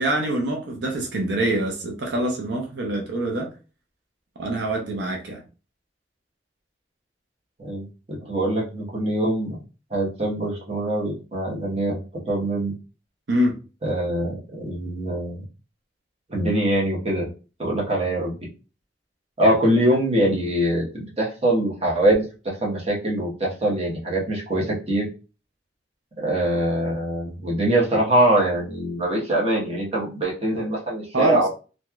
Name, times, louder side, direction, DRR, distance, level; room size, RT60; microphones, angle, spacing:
voice 1, 0.0-3.5 4.4-5.4 13.3-13.6 31.1-31.4, right 1 dB, 80° right, 0.6 m, -24 dB
voice 2, 7.6-9.6 9.9-12.0 12.2-12.7 13.8-15.4 16.3-17.3 17.6-18.3 19.4-25.1 26.2-31.5, right 1 dB, 35° right, 1.0 m, -23 dB
3.0 x 2.7 x 2.3 m
head